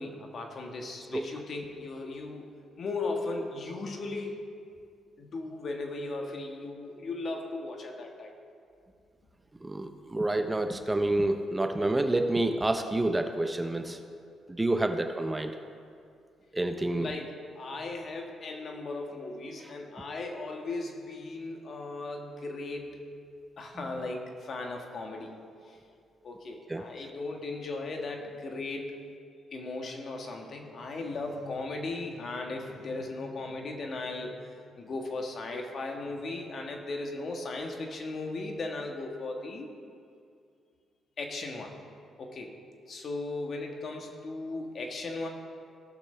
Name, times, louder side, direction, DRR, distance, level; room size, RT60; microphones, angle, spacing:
voice 1, 0.0-2.5 2.8-4.4 5.2-8.4 17.0-23.1 23.6-25.3 25.7-25.8 26.2-29.0 29.5-34.4 34.7-39.7 41.2-41.7 42.2-42.5 42.9-45.3, left 2 dB, 50° left, 2 dB, 1.4 m, -37 dB
voice 2, 9.6-14.0 14.5-15.5 16.5-17.1 26.7-26.8, right 2 dB, 15° right, 7 dB, 0.6 m, -28 dB
17.0 x 6.6 x 3.3 m, 2.3 s
cardioid pair, 90°, 0 cm